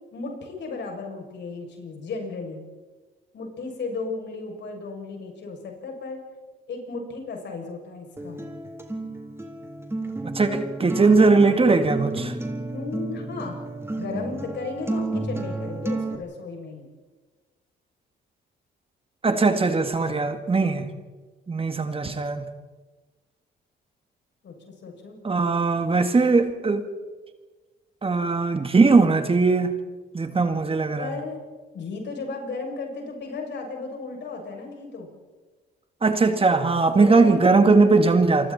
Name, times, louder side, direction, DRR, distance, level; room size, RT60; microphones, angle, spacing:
voice 1, 0.1-2.6 3.3-6.2 6.7-8.4 12.7-13.6 14.0-16.9 24.4-25.2 31.0-31.4 31.7-35.1 37.0-37.7, left 3 dB, 60° left, 2 dB, 7.4 m, -35 dB
Acoustic guitar, 8.2-16.2, right 2 dB, 10° right, 3.6 m, -32 dB
voice 2, 10.2-12.4 19.2-20.8 21.5-22.5 25.2-26.8 28.0-29.7 30.1-31.1 36.0-38.5, right 3 dB, 30° right, 7 dB, 2.2 m, -20 dB
28.5 x 24.0 x 4.5 m, 1.3 s
cardioid pair, 90°, 20 cm